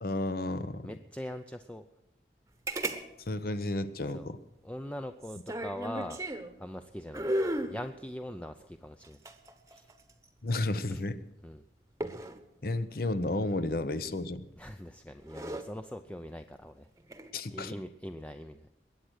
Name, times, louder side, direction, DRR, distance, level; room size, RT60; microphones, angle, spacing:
voice 1, 0.0-0.9 3.3-4.4 10.4-11.2 12.6-14.5 17.3-17.7, left 2 dB, 55° left, 13 dB, 0.9 m, -32 dB
voice 2, 0.8-1.8 4.1-4.3 4.6-6.2 6.6-9.2 9.7-9.9 10.9-11.0 11.4-11.6 14.6-16.9 17.5-18.7, equal, 5° left, 7 dB, 0.5 m, -42 dB
sound 1, 2.7-3.0 3.3-3.4 5.2-6.5 7.1-7.8 9.0-10.2 12.0-12.4 14.3-14.6 15.1-15.6 17.0-17.3, right 1 dB, 15° right, 1.0 m, -34 dB
21.5 x 8.9 x 6.4 m, 0.91 s
head